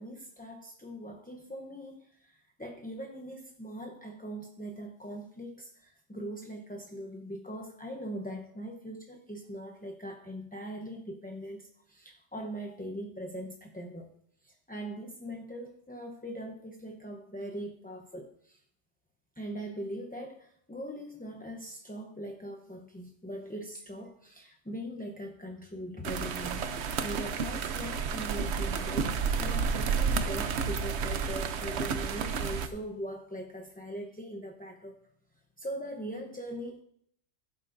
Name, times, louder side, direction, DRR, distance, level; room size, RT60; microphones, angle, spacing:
voice 1, 0.0-14.1 14.4-18.6 19.4-35.0 35.6-36.8, equal, 10° left, 1 dB, 0.6 m, -41 dB
sound 1, 26.0-32.7, right 5 dB, 60° right, 0.9 m, -31 dB
15.5 x 8.0 x 2.6 m, 0.66 s
omnidirectional pair, 1.3 m